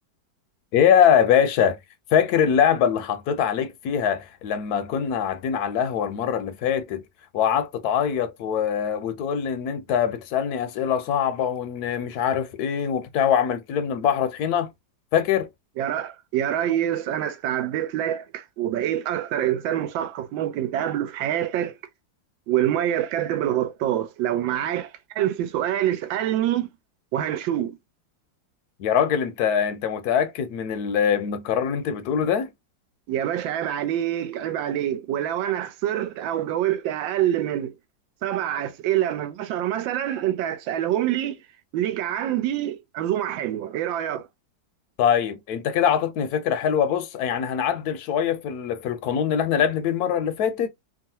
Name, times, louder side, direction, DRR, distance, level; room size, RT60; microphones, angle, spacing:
voice 1, 0.7-1.8 2.1-7.0 7.3-14.7 15.1-15.5 28.8-32.5 45.0-50.7, left 8 dB, 70° left, 1.0 m, -23 dB
voice 2, 15.8-21.8 22.5-26.7 27.1-27.8 33.1-37.8 38.2-41.4 41.7-44.3, right 11 dB, 85° right, 1.3 m, -26 dB
3.1 x 2.4 x 2.7 m
omnidirectional pair, 2.0 m